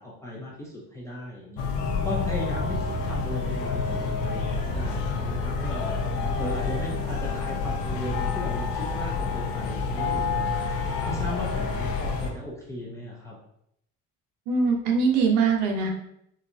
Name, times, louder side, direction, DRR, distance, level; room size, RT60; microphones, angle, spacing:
voice 1, 0.0-1.7 2.0-10.6 11.1-13.4, equal, 10° left, -5 dB, 0.3 m, -36 dB
sound 1, 1.6-12.3, left 4 dB, 80° left, 0.7 m, -28 dB
voice 2, 14.5-15.9, right 5 dB, 70° right, 1 dB, 0.8 m, -22 dB
4.3 x 2.5 x 2.6 m, 0.74 s
cardioid pair, 175°, 32 cm